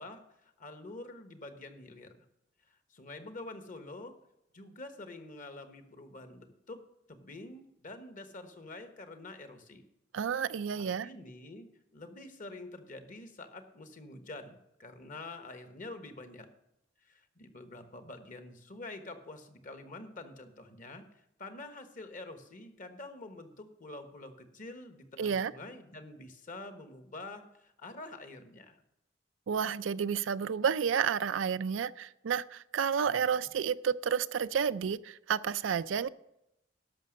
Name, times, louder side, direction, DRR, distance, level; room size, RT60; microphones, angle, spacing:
voice 1, 0.0-2.1 2.7-4.1 4.5-6.8 7.1-9.8 10.8-11.7 11.9-16.5 17.0-21.0 21.4-28.8 33.0-33.5, left 2 dB, 45° left, 8 dB, 1.2 m, -47 dB
voice 2, 10.1-11.1 25.2-25.5 29.5-36.1, right 7 dB, 90° right, 15 dB, 0.4 m, -31 dB
12.0 x 5.9 x 6.4 m, 0.85 s
head